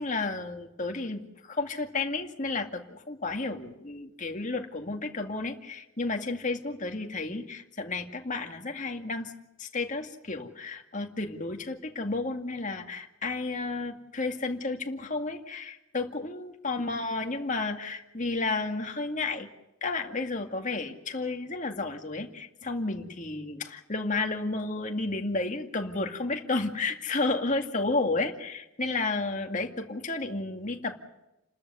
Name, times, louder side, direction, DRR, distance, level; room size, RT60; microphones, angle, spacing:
voice 1, 0.0-9.3 9.6-19.5 19.8-31.0, left 3 dB, 35° left, 4 dB, 2.2 m, -32 dB
29.5 x 13.5 x 9.5 m, 0.92 s
head